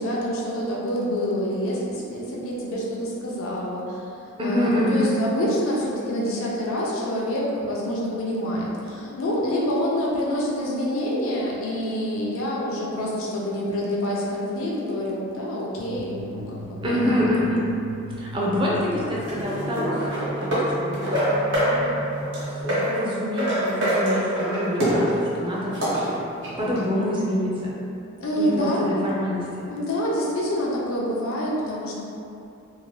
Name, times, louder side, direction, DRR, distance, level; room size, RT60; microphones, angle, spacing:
voice 1, 0.0-4.0 4.4-17.5 28.2-28.9 29.7-32.0, equal, 75° left, -5 dB, 0.5 m, -27 dB
voice 2, 4.4-5.1 16.8-17.7 18.2-20.0 20.4-21.9 22.6-26.2 26.6-27.7 28.4-29.4, left 1 dB, 25° right, -5 dB, 0.4 m, -26 dB
sound 1, 15.8-22.6, right 1 dB, 85° right, 0.7 m, -37 dB
sound 2, 19.0-26.9, right 1 dB, 60° right, 0.9 m, -25 dB
2.7 x 2.1 x 3.1 m, 2.7 s
head